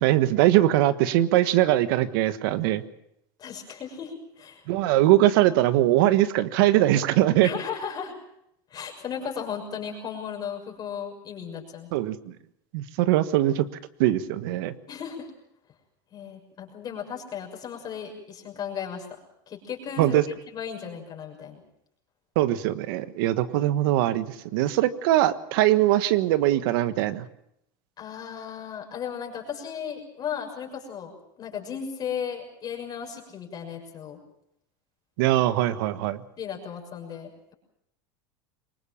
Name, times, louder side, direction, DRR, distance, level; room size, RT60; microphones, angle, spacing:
voice 1, 0.0-2.8 4.7-7.5 11.9-12.3 12.7-13.7 14.0-14.7 20.0-20.2 22.3-24.3 24.5-27.2 35.2-36.2, right 14 dB, 75° right, 13 dB, 1.4 m, -21 dB
voice 2, 3.4-4.6 5.0-5.2 7.4-8.1 8.7-11.9 14.9-15.3 16.1-19.2 19.5-20.2 20.5-21.6 28.0-34.2 36.4-37.3, left 7 dB, 35° left, 1 dB, 6.5 m, -35 dB
23.5 x 20.0 x 7.3 m, 0.78 s
supercardioid pair, 115°, 12 cm